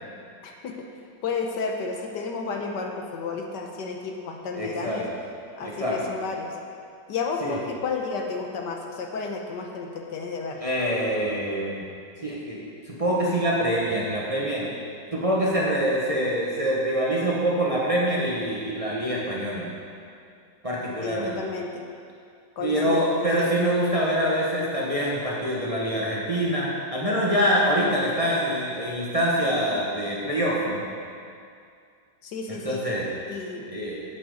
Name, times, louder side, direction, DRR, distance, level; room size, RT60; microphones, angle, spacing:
voice 1, 0.4-0.7 1.2-5.1 5.6-6.5 7.1-10.6 21.0-21.8 22.6-23.5 32.2-32.8 33.2-33.7, left 4 dB, 70° left, 2 dB, 1.5 m, -32 dB
voice 2, 4.5-5.1 5.6-6.0 7.4-7.6 10.6-11.8 12.2-12.6 12.9-14.7 15.1-19.7 20.6-21.4 22.6-30.8 32.5-33.1 33.7-34.2, equal, 20° right, -5 dB, 1.1 m, -25 dB
12.0 x 8.3 x 3.9 m, 2.4 s
omnidirectional pair, 2.0 m